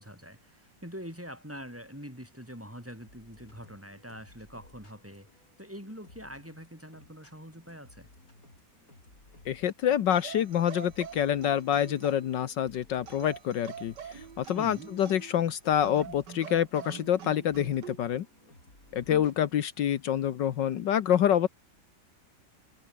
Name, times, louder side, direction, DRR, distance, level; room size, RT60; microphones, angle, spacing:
voice 1, 0.0-8.1 14.5-14.9, equal, 5° right, 7.7 m, -44 dB
sound 1, 2.9-19.5, left 2 dB, 50° left, 6.8 m, -58 dB
voice 2, 9.4-18.3 18.9-21.5, left 10 dB, 75° left, 1.7 m, -27 dB
sound 2, 10.1-12.4 13.1-15.4 15.8-18.0 19.1-19.4, right 8 dB, 70° right, 2.0 m, -45 dB
omnidirectional pair, 2.0 m